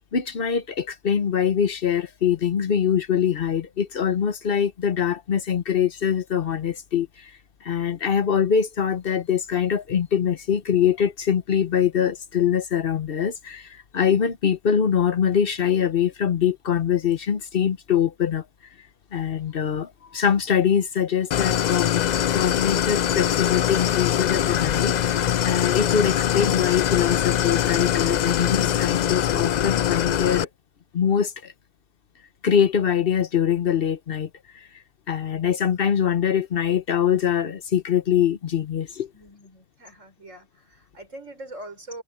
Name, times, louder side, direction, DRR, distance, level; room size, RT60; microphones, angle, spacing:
voice 1, 0.1-7.3 7.6-13.7 13.9-18.4 19.1-21.9 22.3-30.5 30.9-31.5 32.4-34.3 35.1-39.1, left 8 dB, 50° left, 1.0 m, -23 dB
Idling, 21.3-30.4, left 10 dB, 75° left, 0.4 m, -23 dB
voice 2, 39.1-42.0, right 1 dB, 85° right, 6.8 m, -42 dB
omnidirectional pair, 1.3 m